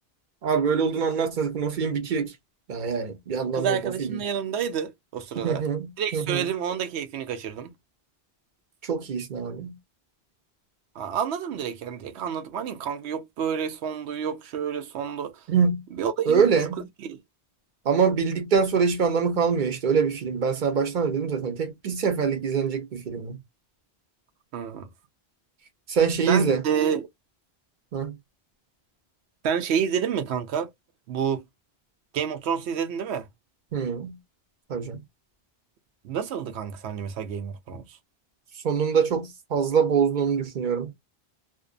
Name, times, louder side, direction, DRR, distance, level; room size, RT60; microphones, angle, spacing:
voice 1, 0.4-2.3 2.7-4.2 5.4-6.5 8.8-9.8 15.5-15.8 16.3-16.8 17.8-23.4 25.9-26.6 27.9-28.2 33.7-34.2 34.7-35.0 38.6-40.9, right 6 dB, 50° right, 0.8 m, -24 dB
voice 2, 3.5-5.6 6.0-7.7 11.0-15.4 16.0-16.4 17.0-17.2 24.5-24.9 26.3-27.1 29.4-30.7 31.1-31.4 32.1-33.3 36.0-38.0, right 7 dB, 85° right, 0.9 m, -29 dB
2.6 x 2.2 x 2.3 m
omnidirectional pair, 1.1 m